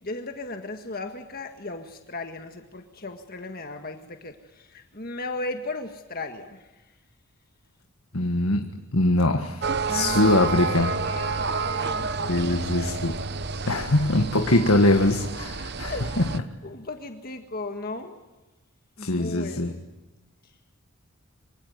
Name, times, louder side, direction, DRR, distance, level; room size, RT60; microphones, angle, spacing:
voice 1, 0.0-6.7 9.9-10.4 11.0-13.2 13.7-13.9 15.9-16.2 16.6-18.2 19.0-19.8, left 2 dB, 40° left, 5 dB, 1.7 m, -36 dB
voice 2, 8.1-8.6 8.9-11.0 12.3-13.2 13.7-16.3 19.0-19.7, left 2 dB, 70° left, 5 dB, 1.7 m, -22 dB
sound 1, 9.6-16.4, right 4 dB, 45° right, 0.9 m, -29 dB
25.5 x 24.5 x 9.4 m, 1.1 s
head